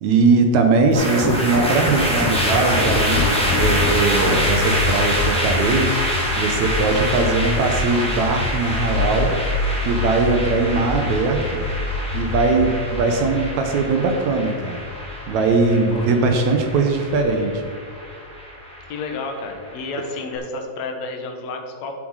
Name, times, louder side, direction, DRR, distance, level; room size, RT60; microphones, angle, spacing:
voice 1, 0.0-5.9 6.4-9.3 9.8-11.6 12.1-14.8 15.3-17.6, right 3 dB, 70° right, 4 dB, 2.0 m, -20 dB
sound 1, 0.9-20.2, equal, ahead, 1.6 m, -26 dB
sound 2, 1.9-18.9, left 4 dB, 80° left, 1.9 m, -27 dB
voice 2, 18.9-21.9, left 3 dB, 60° left, 3 dB, 2.3 m, -30 dB
10.0 x 7.7 x 4.8 m, 2.2 s
omnidirectional pair, 4.0 m